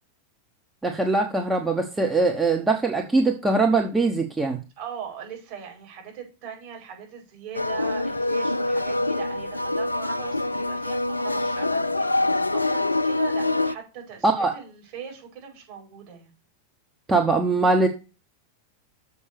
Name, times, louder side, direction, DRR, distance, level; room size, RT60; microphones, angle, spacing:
voice 1, 0.8-4.6 14.2-14.6 17.1-17.9, right 3 dB, 10° right, 2 dB, 1.1 m, -22 dB
voice 2, 4.8-16.3, right 8 dB, 45° right, -1 dB, 5.0 m, -40 dB
sound 1, 7.5-13.7, left 2 dB, 85° left, 0.3 m, -25 dB
7.1 x 5.5 x 6.7 m, 0.31 s
figure-of-eight pair, 90°, 0 cm